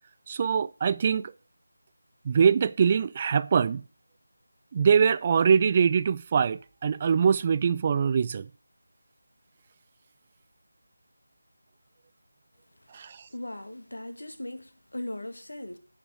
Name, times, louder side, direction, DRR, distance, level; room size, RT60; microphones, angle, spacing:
voice 1, 0.3-1.3 2.3-3.8 4.7-8.5 12.9-13.2, right 6 dB, 25° right, 0.3 m, -23 dB
voice 2, 12.8-15.8, left 1 dB, 80° left, 1.8 m, -39 dB
8.2 x 7.8 x 4.9 m
figure-of-eight pair, 165°, 0 cm